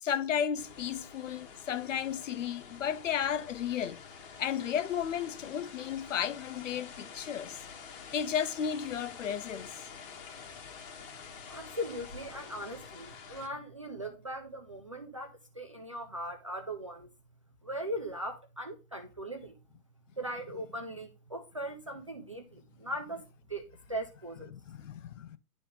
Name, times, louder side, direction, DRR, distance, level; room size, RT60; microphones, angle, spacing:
voice 1, 0.0-4.0 4.4-7.6 8.1-9.7 24.5-25.4, left 8 dB, 55° left, 0.7 m, -33 dB
sound 1, 0.6-13.5, left 6 dB, 35° left, 1.6 m, -48 dB
voice 2, 11.5-17.1 17.6-19.6 20.2-23.2 23.5-23.6 23.9-24.5, right 1 dB, 20° right, 0.4 m, -39 dB
11.0 x 3.7 x 3.7 m
hypercardioid pair, 150°, 47 cm